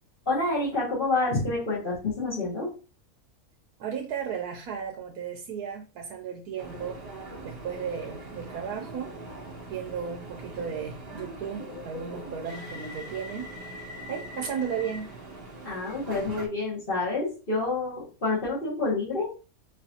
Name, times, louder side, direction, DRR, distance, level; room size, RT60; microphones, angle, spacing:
voice 1, 0.3-2.7 15.6-19.3, left 2 dB, 40° left, 1.8 m, -28 dB
voice 2, 3.8-9.2 9.7-13.8 14.1-15.1, right 7 dB, 85° right, 1.2 m, -35 dB
sound 1, 6.6-16.5, right 1 dB, 30° right, 1.0 m, -41 dB
5.1 x 3.1 x 2.8 m
omnidirectional pair, 1.5 m